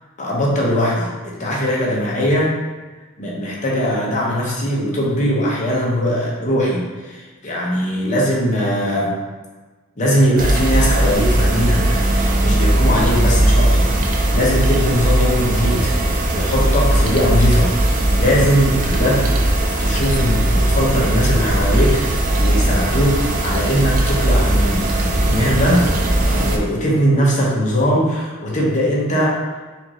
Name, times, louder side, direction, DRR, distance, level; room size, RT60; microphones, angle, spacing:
voice 1, 0.2-2.5 3.2-9.1 10.0-15.9 16.3-17.7 18.2-19.4 19.8-25.8 26.2-29.4, equal, 35° left, -4 dB, 0.8 m, -20 dB
sound 1, 10.4-26.6, right 1 dB, 40° right, 0.4 m, -18 dB
4.4 x 2.5 x 3.0 m, 1.3 s
head